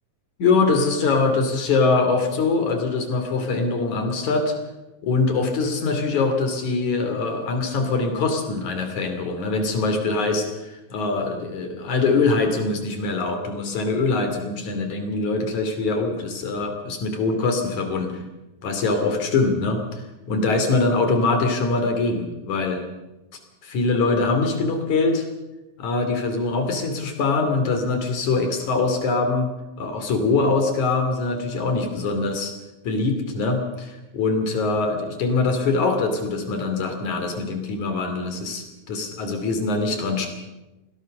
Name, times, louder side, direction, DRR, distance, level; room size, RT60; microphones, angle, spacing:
voice 1, 0.4-4.5 5.0-18.1 18.6-22.8 23.6-25.3 25.8-29.5 29.8-32.5 32.8-40.3, left 3 dB, 65° left, 6 dB, 4.1 m, -23 dB
24.5 x 17.5 x 6.6 m, 1.0 s
omnidirectional pair, 3.6 m